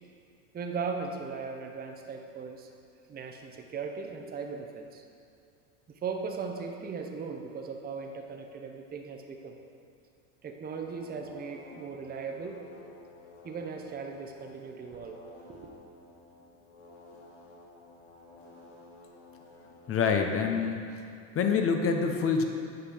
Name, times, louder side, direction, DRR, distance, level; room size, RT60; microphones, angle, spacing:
voice 1, 0.5-2.7 3.1-5.0 5.9-9.6 10.4-12.7 13.4-15.2 15.5-15.6, right 5 dB, 20° right, 3 dB, 0.7 m, -38 dB
sound 1, 10.8-20.0, left 2 dB, 80° left, 1.5 m, -53 dB
voice 2, 19.9-20.9 21.3-22.4, left 5 dB, 30° left, 4 dB, 0.7 m, -26 dB
8.2 x 5.1 x 5.0 m, 2.4 s
supercardioid pair, 105°, 42 cm